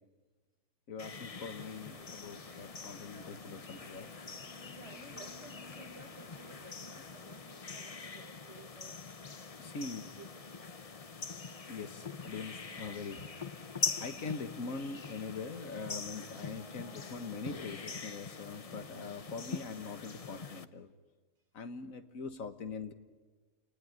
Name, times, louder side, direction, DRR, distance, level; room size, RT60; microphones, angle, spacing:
voice 1, 0.9-4.1 9.6-10.1 11.7-13.2 14.0-20.9 21.5-22.9, left 4 dB, 75° left, 10 dB, 1.8 m, -43 dB
sound 1, 1.0-20.6, left 5 dB, 30° left, 0.8 m, -43 dB
sound 2, 1.3-8.0, left 3 dB, 50° left, 2.4 m, -57 dB
voice 2, 4.8-9.1 10.0-10.5, right 4 dB, 60° right, 8 dB, 1.9 m, -55 dB
29.5 x 19.5 x 9.7 m, 1.4 s
omnidirectional pair, 1.4 m